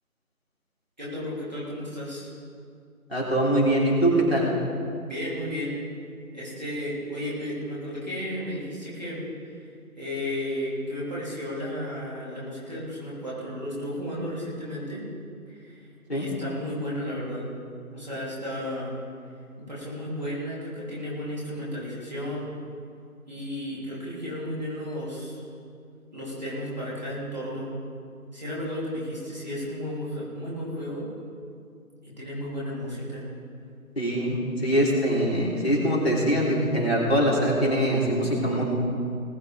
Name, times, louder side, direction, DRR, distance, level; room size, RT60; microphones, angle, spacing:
voice 1, 1.0-2.3 5.1-5.7 6.3-9.7 10.0-15.0 15.5-15.9 16.1-17.6 17.9-19.0 19.7-22.5 23.3-25.5 26.1-27.7 28.3-31.1 32.0-33.3, equal, 30° right, -8 dB, 3.6 m, -33 dB
voice 2, 3.1-4.5 16.1-16.3 34.0-38.6, right 1 dB, 45° left, -6 dB, 3.6 m, -23 dB
20.5 x 11.0 x 3.7 m, 2.3 s
figure-of-eight pair, 180°, 44 cm